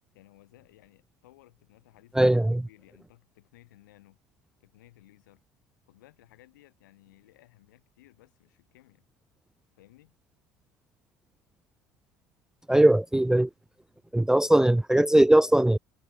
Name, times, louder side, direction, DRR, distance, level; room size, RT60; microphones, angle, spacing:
voice 1, 0.1-4.2 4.6-5.4 5.9-9.1 9.7-10.2, left 17 dB, 75° left, 7.5 m, -58 dB
voice 2, 2.1-2.6 12.7-13.5 14.1-15.8, right 1 dB, 5° right, 0.4 m, -20 dB
hypercardioid pair, 60°, 10 cm